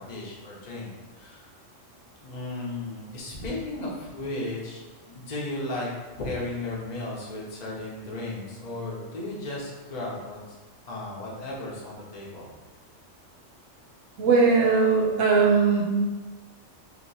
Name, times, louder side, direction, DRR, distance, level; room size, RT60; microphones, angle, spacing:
voice 1, 0.0-1.5 2.2-5.9 6.2-10.6 10.9-12.5, left 2 dB, 40° left, -4 dB, 0.9 m, -35 dB
voice 2, 14.2-15.8, right 4 dB, 75° right, -1 dB, 1.1 m, -19 dB
3.0 x 2.8 x 4.0 m, 1.2 s
omnidirectional pair, 1.3 m